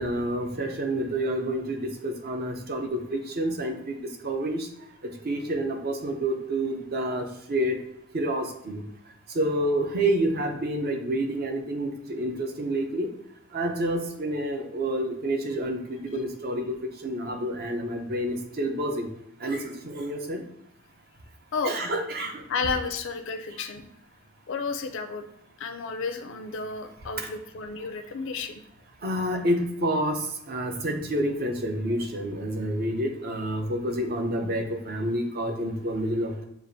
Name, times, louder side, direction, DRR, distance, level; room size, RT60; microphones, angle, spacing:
voice 1, 0.0-4.7 5.2-7.8 8.1-8.8 9.3-13.1 13.5-16.7 17.0-19.1 19.4-20.4 21.6-22.4 27.2-27.3 29.0-36.4, right 1 dB, 45° right, 4 dB, 0.6 m, -28 dB
voice 2, 22.5-23.8 24.5-25.2 25.6-28.6, left 4 dB, 55° left, 6 dB, 0.4 m, -32 dB
6.9 x 2.4 x 2.6 m, 0.77 s
head